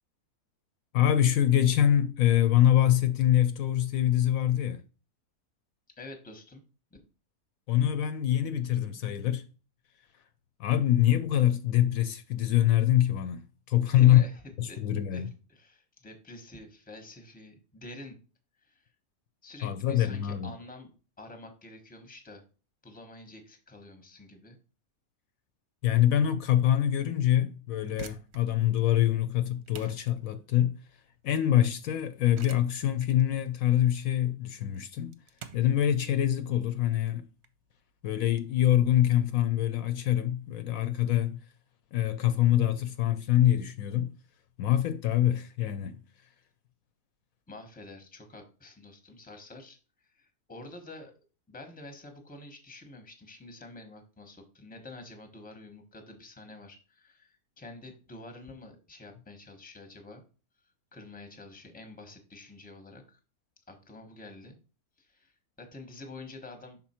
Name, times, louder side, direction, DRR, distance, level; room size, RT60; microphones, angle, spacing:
voice 1, 0.9-4.8 7.7-9.4 10.6-14.2 14.6-15.3 19.6-20.5 25.8-30.7 31.2-35.1 35.5-37.2 38.0-41.4 41.9-44.1 44.6-46.0, left 12 dB, 75° left, 1.0 m, -25 dB
voice 2, 6.0-6.6 6.9-7.0 13.9-14.4 14.7-14.8 15.1-18.2 18.6-18.8 19.4-20.9 21.2-22.4 22.8-24.6 47.5-49.8 50.1-51.1 51.5-60.2 60.9-63.2 63.7-64.6 65.0-66.8, left 2 dB, 5° left, 0.9 m, -48 dB
sound 1, 27.7-38.4, right 7 dB, 55° right, 0.8 m, -50 dB
5.9 x 4.1 x 4.3 m
omnidirectional pair, 1.6 m